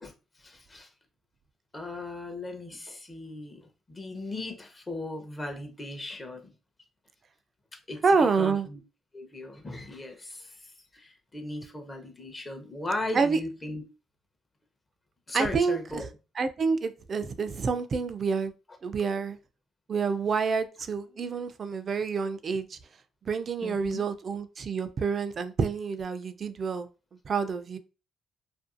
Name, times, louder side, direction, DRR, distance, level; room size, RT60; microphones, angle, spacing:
voice 1, 0.4-0.9 1.7-6.5 7.9-8.8 9.1-13.8 15.3-16.1 23.6-24.0, left 2 dB, 30° left, 0.7 m, -37 dB
voice 2, 8.0-8.7 13.1-13.4 15.3-16.1 16.4-18.5 18.8-19.4 19.9-22.8 23.3-26.9 27.2-27.8, right 5 dB, 50° right, 0.4 m, -28 dB
2.5 x 2.3 x 2.5 m
supercardioid pair, 60°, 0 cm